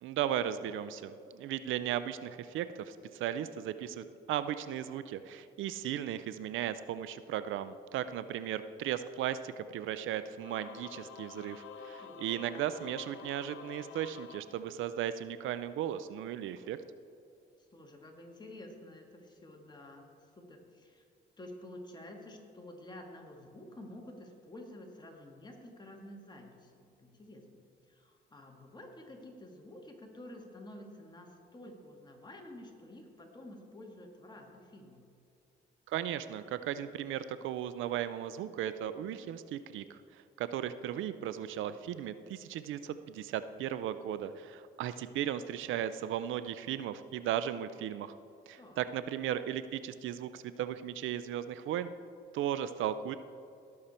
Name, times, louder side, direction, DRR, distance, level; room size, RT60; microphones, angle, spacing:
voice 1, 0.0-16.8 35.9-40.0 40.4-48.1 48.5-51.9 52.3-53.2, right 10 dB, 80° right, 13 dB, 0.5 m, -36 dB
Singing / Musical instrument, 10.4-15.2, left 7 dB, 75° left, 0.7 m, -49 dB
voice 2, 12.0-12.4 17.6-21.0 21.4-35.0 48.6-48.8, left 1 dB, 20° left, 1 dB, 1.9 m, -50 dB
17.5 x 6.7 x 4.3 m, 2.6 s
cardioid pair, 90°, 20 cm